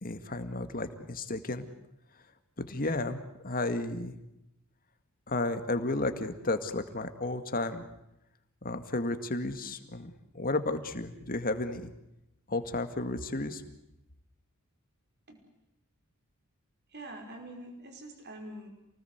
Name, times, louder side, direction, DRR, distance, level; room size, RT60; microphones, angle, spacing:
voice 1, 0.0-1.7 2.6-4.1 5.3-7.9 8.6-11.9 12.5-13.6, left 2 dB, 40° left, 8 dB, 2.1 m, -33 dB
voice 2, 16.9-18.7, right 1 dB, 50° right, 4 dB, 5.3 m, -45 dB
28.5 x 19.5 x 8.1 m, 0.87 s
head